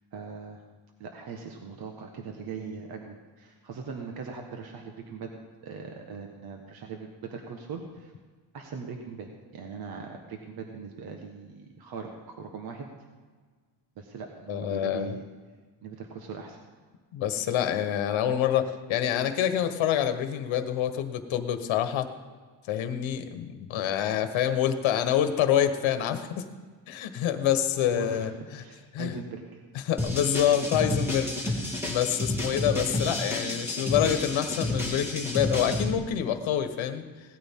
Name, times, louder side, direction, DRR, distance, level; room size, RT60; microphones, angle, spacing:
voice 1, 0.1-0.6 1.0-5.3 5.6-8.1 8.5-12.9 14.0-15.2 15.8-16.6 27.9-28.3 28.6-29.6, right 5 dB, 50° right, 3 dB, 1.5 m, -40 dB
voice 2, 14.5-15.1 17.1-22.1 22.7-26.5 26.9-28.6 28.9-29.2 29.8-37.0, left 10 dB, 75° left, 9 dB, 1.3 m, -27 dB
sound 1, 30.0-35.9, left 1 dB, 5° right, 2.1 m, -30 dB
18.0 x 13.5 x 3.7 m, 1.5 s
cardioid pair, 175°, 47 cm